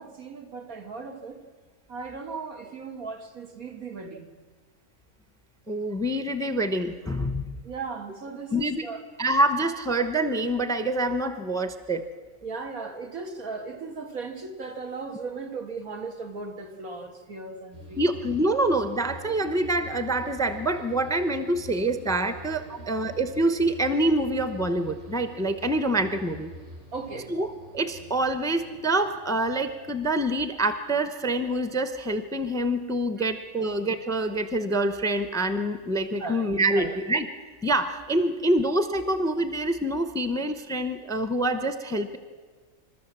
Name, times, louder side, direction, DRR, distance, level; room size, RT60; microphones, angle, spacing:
voice 1, 0.0-1.4 1.9-4.4 7.6-9.1 12.4-18.0 22.7-23.0 26.9-27.3 33.2-33.3 33.6-33.7 36.2-37.0, right 4 dB, 80° right, 4 dB, 2.2 m, -37 dB
voice 2, 5.7-7.6 8.5-8.9 9.2-12.1 18.0-26.5 27.3-27.5 27.7-37.3 37.6-42.2, right 1 dB, 5° left, 9 dB, 0.7 m, -26 dB
sound 1, 17.7-31.0 31.3-32.0, left 1 dB, 60° right, 6.9 m, -46 dB
27.5 x 13.0 x 7.4 m, 1.5 s
omnidirectional pair, 1.5 m